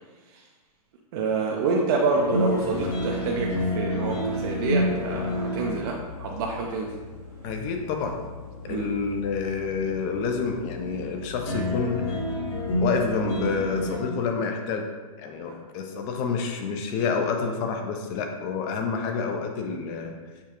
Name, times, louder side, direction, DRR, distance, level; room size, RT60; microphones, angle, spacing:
voice 1, 1.1-6.9 8.7-8.9, right 3 dB, 40° right, -1 dB, 0.5 m, -27 dB
sound 1, 2.1-13.9, left 1 dB, 50° left, 1.4 m, -30 dB
voice 2, 7.4-8.2 8.6-12.2 12.8-14.9 15.2-20.1, left 5 dB, 30° left, 4 dB, 0.5 m, -28 dB
6.6 x 2.3 x 2.9 m, 1.3 s
hypercardioid pair, 140°, 19 cm